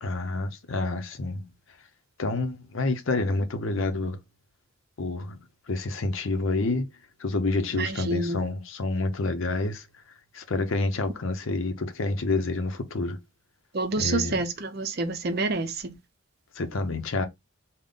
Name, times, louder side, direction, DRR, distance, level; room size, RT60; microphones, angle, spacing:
voice 1, 0.0-1.5 2.2-4.2 5.0-5.4 5.7-6.9 7.2-9.9 10.3-13.2 14.0-14.4 16.6-17.3, left 3 dB, 65° left, 0.6 m, -28 dB
voice 2, 7.8-8.4 13.7-16.0, right 3 dB, 50° right, 0.6 m, -28 dB
3.6 x 2.1 x 3.7 m
head